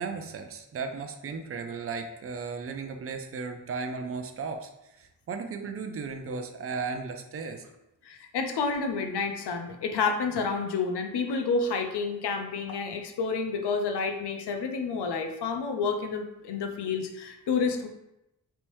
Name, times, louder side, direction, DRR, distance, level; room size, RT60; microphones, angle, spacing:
voice 1, 0.0-4.7 5.0-7.7, right 4 dB, 35° right, 6 dB, 0.4 m, -35 dB
voice 2, 8.0-17.9, left 4 dB, 85° left, 5 dB, 0.5 m, -29 dB
3.4 x 2.6 x 3.0 m, 0.88 s
cardioid pair, 60°, 39 cm